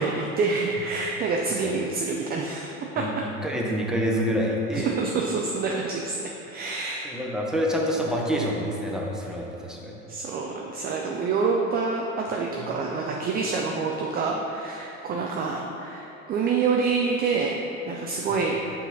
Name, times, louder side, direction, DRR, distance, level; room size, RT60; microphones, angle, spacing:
voice 1, 0.0-3.2 4.7-6.2 6.5-7.1 10.1-17.6 17.9-18.6, right 4 dB, 25° right, 0 dB, 0.4 m, -27 dB
voice 2, 3.0-5.2 7.0-10.0 12.6-12.7 13.0-13.1, equal, ahead, -2 dB, 0.8 m, -27 dB
6.0 x 4.1 x 3.9 m, 2.8 s
hypercardioid pair, 85°, 42 cm